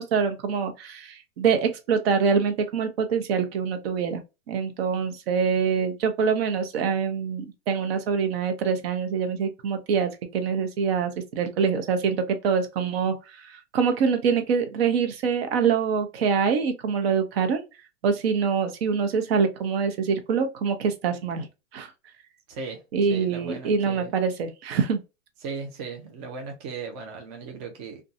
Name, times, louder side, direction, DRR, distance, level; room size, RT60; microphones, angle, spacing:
voice 1, 0.0-4.2 4.5-17.6 18.0-21.5 21.7-21.9 22.9-25.0, right 6 dB, 50° right, 0.7 m, -25 dB
voice 2, 22.5-22.8 23.1-24.2 25.4-28.0, right 4 dB, 25° right, 0.4 m, -37 dB
2.6 x 2.3 x 2.5 m
hypercardioid pair, 135°, 38 cm